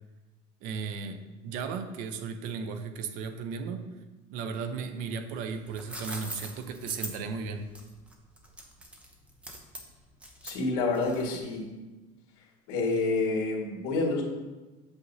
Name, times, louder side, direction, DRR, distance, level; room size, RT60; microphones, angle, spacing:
voice 1, 0.6-3.9 4.3-7.7, right 5 dB, 60° right, 8 dB, 0.6 m, -35 dB
sound 1, 5.5-11.5, right 1 dB, 10° right, 0.7 m, -42 dB
voice 2, 10.4-11.7 12.7-14.2, left 3 dB, 70° left, -1 dB, 1.8 m, -28 dB
8.1 x 6.9 x 2.7 m, 1.2 s
cardioid pair, 165°, 15 cm